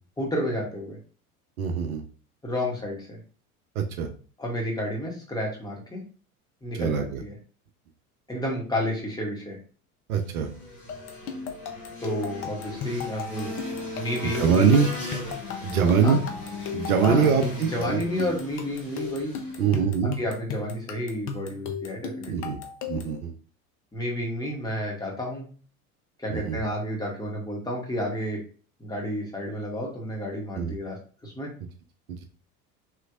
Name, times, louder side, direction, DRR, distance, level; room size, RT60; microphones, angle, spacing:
voice 1, 0.2-1.0 2.4-3.2 4.4-6.0 6.6-7.3 8.3-9.6 12.0-13.5 13.9-14.7 16.0-16.2 17.0-19.3 20.2-22.5 23.9-25.4 26.2-28.4 28.8-31.0 31.2-31.5, equal, 10° left, -2 dB, 1.5 m, -31 dB
voice 2, 1.6-2.0 3.8-4.1 6.7-7.2 10.1-10.5 14.4-14.9 15.6-16.2 16.7-18.0 19.6-20.2 22.3-22.6 22.9-23.3 26.3-26.6 30.5-30.7 32.1-32.2, right 6 dB, 70° right, 5 dB, 0.7 m, -23 dB
sound 1, 10.1-19.9, left 2 dB, 80° left, 1.5 m, -39 dB
sound 2, 10.9-23.2, left 6 dB, 30° left, 0.6 m, -36 dB
3.2 x 3.0 x 2.4 m, 0.39 s
figure-of-eight pair, 70°, 45 cm